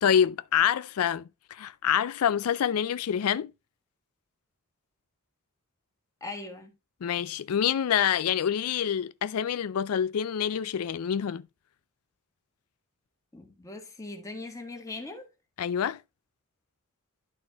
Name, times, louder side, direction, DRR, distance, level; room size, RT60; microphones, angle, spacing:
voice 1, 0.0-1.2 1.5-3.5 7.0-11.4 15.6-16.0, left 8 dB, 90° left, 0.4 m, -26 dB
voice 2, 6.2-6.7 13.3-15.3, left 2 dB, 15° left, 1.5 m, -40 dB
11.5 x 4.2 x 3.4 m
head